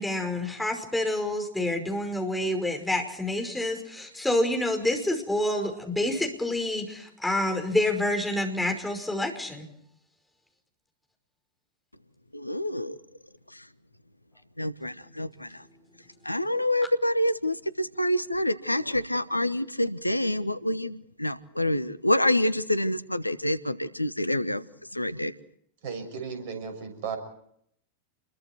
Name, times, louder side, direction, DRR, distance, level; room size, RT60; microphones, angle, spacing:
voice 1, 0.0-9.7, left 1 dB, 5° left, 4 dB, 5.2 m, -28 dB
voice 2, 12.3-13.0 13.5-13.7 14.6-15.7 16.2-25.3, left 1 dB, 85° left, 16 dB, 1.0 m, -27 dB
voice 3, 25.8-27.2, right 6 dB, 50° right, 8 dB, 6.7 m, -35 dB
28.5 x 22.5 x 4.6 m, 0.69 s
figure-of-eight pair, 90°, 0 cm